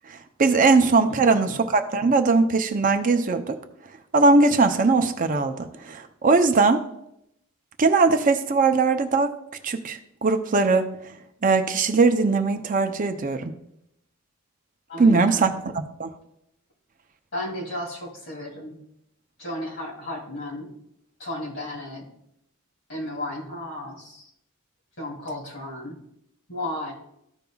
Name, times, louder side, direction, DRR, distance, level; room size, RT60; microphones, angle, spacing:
voice 1, 0.1-3.6 4.1-6.8 7.8-9.3 9.6-10.9 11.4-13.5 15.0-16.1, right 3 dB, 40° right, 6 dB, 0.5 m, -20 dB
voice 2, 14.9-15.5 17.3-18.8 19.4-20.7 21.2-22.1 22.9-24.3 25.0-26.0 26.5-26.9, left 1 dB, 60° left, -1 dB, 2.6 m, -34 dB
14.0 x 5.4 x 2.3 m, 0.78 s
head